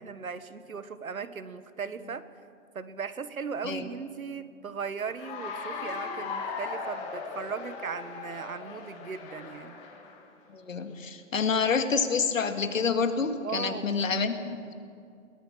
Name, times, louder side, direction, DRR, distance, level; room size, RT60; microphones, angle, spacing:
voice 1, 0.0-2.2 2.7-9.8 13.4-13.9, right 5 dB, 85° right, 13 dB, 1.5 m, -37 dB
Cheering / Applause, 5.1-10.3, left 4 dB, 15° left, 1.7 m, -38 dB
voice 2, 10.5-14.7, left 5 dB, 70° left, 7 dB, 2.3 m, -28 dB
22.5 x 18.0 x 7.5 m, 2.4 s
hypercardioid pair, 155°, 41 cm